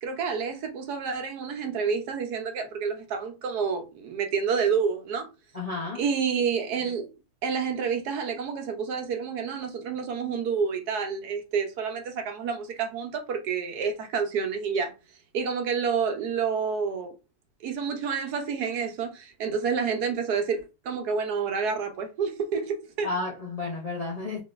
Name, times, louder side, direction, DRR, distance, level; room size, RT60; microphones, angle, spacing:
voice 1, 0.0-5.3 6.0-7.1 7.4-14.9 15.3-17.1 17.6-23.1, right 6 dB, 85° right, 1.4 m, -29 dB
voice 2, 5.5-6.0 23.0-24.4, left 3 dB, 35° left, 0.6 m, -32 dB
3.8 x 3.6 x 2.5 m
omnidirectional pair, 1.6 m